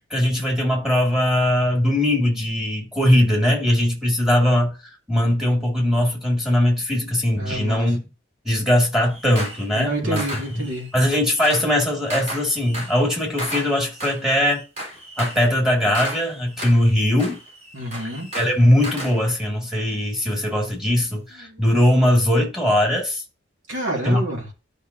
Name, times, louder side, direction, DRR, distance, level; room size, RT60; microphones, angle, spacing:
voice 1, 0.1-4.7 5.1-8.0 8.4-10.2 10.6-14.6 15.2-17.4 18.3-23.2 24.0-24.2, left 1 dB, ahead, 2.2 m, -20 dB
voice 2, 7.3-7.9 9.7-10.9 17.7-18.3 21.4-21.6 23.7-24.5, right 1 dB, 85° right, 2.5 m, -28 dB
sound 1, 9.0-9.7 10.2-19.2, equal, 35° right, 3.7 m, -34 dB
12.0 x 5.2 x 2.7 m
head